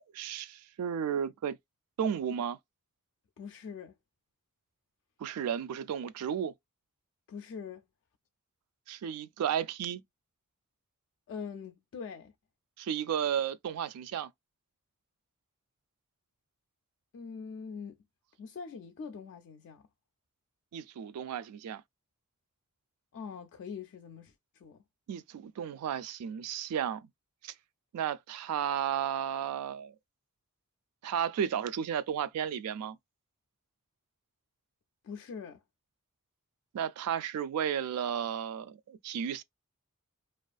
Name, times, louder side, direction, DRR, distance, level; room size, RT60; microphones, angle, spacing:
voice 1, 0.0-1.6 2.0-2.6 5.2-6.5 8.9-10.0 12.8-14.3 20.7-21.8 25.1-27.1 27.4-27.5 27.9-29.9 31.0-33.0 36.7-39.4, right 8 dB, 80° right, 0.3 m, -33 dB
voice 2, 3.4-4.0 7.3-7.8 11.3-12.3 17.1-18.0 18.4-19.9 23.1-24.8 35.0-35.6, left 6 dB, 55° left, 0.3 m, -43 dB
2.4 x 2.4 x 2.2 m
head